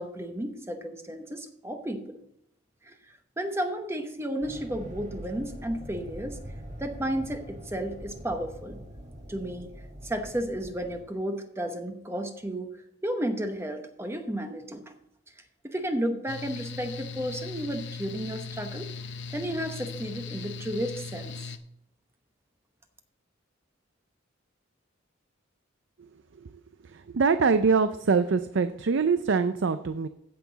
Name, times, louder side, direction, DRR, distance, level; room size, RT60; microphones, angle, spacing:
voice 1, 0.0-2.2 2.8-2.9 3.4-6.4 6.8-8.8 9.3-9.7 10.0-14.9 15.6-21.5, right 1 dB, 15° right, 5 dB, 0.9 m, -33 dB
sound 1, 4.4-11.0, equal, 35° right, 1.6 m, -43 dB
Mechanical fan, 16.3-21.6, left 4 dB, 65° left, 0.8 m, -39 dB
voice 2, 26.9-30.1, right 5 dB, 65° right, 10 dB, 0.5 m, -24 dB
15.5 x 6.0 x 4.0 m, 0.80 s
head